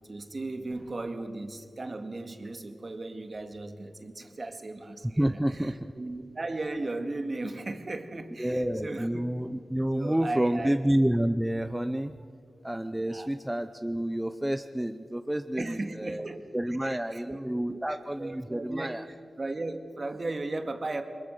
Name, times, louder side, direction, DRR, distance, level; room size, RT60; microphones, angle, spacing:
voice 1, 0.1-9.2 10.0-10.8 13.1-13.3 15.6-16.5 16.8-17.4 17.7-21.0, right 2 dB, 45° right, 6 dB, 2.1 m, -36 dB
voice 2, 5.2-5.9 8.4-12.1 12.6-16.3 16.5-19.0, right 1 dB, 10° right, 8 dB, 0.7 m, -29 dB
22.0 x 21.0 x 6.6 m, 2.1 s
cardioid pair, 55°, 0 cm